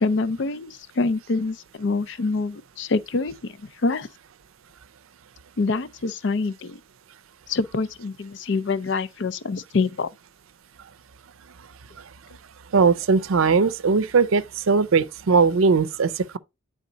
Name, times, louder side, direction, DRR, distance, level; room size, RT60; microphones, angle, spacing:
voice 1, 0.0-3.5 3.8-4.1 5.6-6.8 7.5-10.1, left 3 dB, 60° left, 0.5 m, -25 dB
voice 2, 12.7-16.4, right 5 dB, 85° right, 0.5 m, -19 dB
9.4 x 3.6 x 3.9 m
head